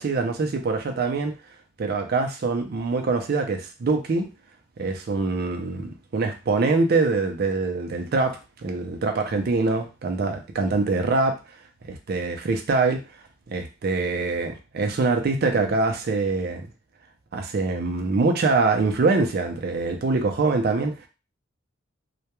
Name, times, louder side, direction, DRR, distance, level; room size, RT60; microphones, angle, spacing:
voice 1, 0.0-1.3 1.8-4.3 4.8-11.4 11.9-13.0 13.5-16.7 17.3-21.1, right 3 dB, 50° right, 6 dB, 0.4 m, -24 dB
2.2 x 2.1 x 2.9 m, 0.30 s
head